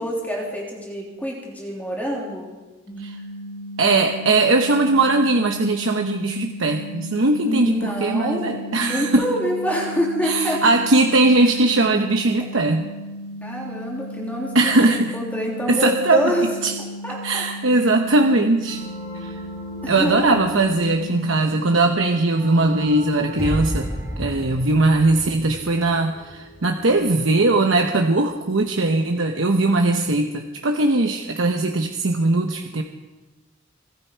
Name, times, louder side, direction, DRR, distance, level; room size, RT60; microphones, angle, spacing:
voice 1, 0.0-2.5 7.4-8.5 8.8-10.6 13.4-16.5 17.0-17.4 19.8-20.4, equal, 10° left, -3 dB, 3.1 m, -26 dB
sound 1, 2.9-21.4, equal, 30° left, 4.8 m, -36 dB
voice 2, 3.8-9.3 10.2-12.9 14.5-15.1 15.7-16.3 16.6-16.7 17.2-18.8 19.2-19.4 19.9-23.9 24.2-32.8, right 2 dB, 85° right, 4 dB, 1.0 m, -19 dB
sound 2, 18.6-29.1, left 1 dB, 70° left, 7.0 m, -41 dB
sound 3, 23.4-26.6 26.8-27.1, equal, 15° right, 1.4 m, -31 dB
24.5 x 12.5 x 4.6 m, 1.2 s
head